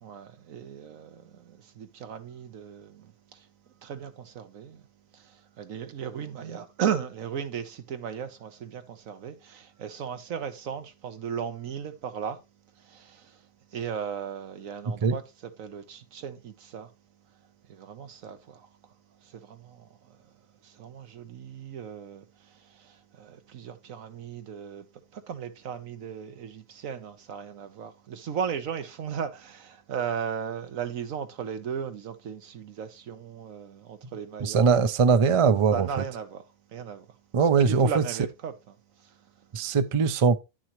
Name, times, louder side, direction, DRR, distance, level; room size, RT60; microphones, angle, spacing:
voice 1, 0.0-3.5 3.8-4.9 5.1-12.4 12.7-16.9 17.6-20.3 20.6-24.9 25.1-34.9 35.7-36.4 36.7-37.2 37.6-38.5 39.0-39.5, right 7 dB, 85° right, 1.4 m, -36 dB
voice 2, 34.4-35.9 37.3-38.0 39.5-40.4, right 5 dB, 50° right, 0.4 m, -21 dB
10.0 x 6.2 x 3.0 m
omnidirectional pair, 1.4 m